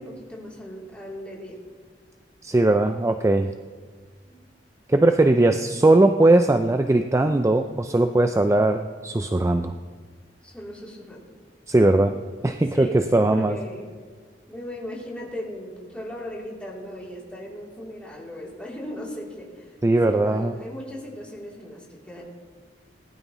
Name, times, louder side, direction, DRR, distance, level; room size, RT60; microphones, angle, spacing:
voice 1, 0.0-1.6 4.2-4.4 10.4-11.2 12.7-13.9 14.5-19.8 20.0-22.2, left 1 dB, 5° left, -5 dB, 3.1 m, -37 dB
voice 2, 2.4-3.5 4.9-9.7 11.7-12.1 12.4-13.6 19.8-20.5, right 2 dB, 15° right, 8 dB, 0.4 m, -19 dB
19.0 x 12.5 x 3.1 m, 1.5 s
head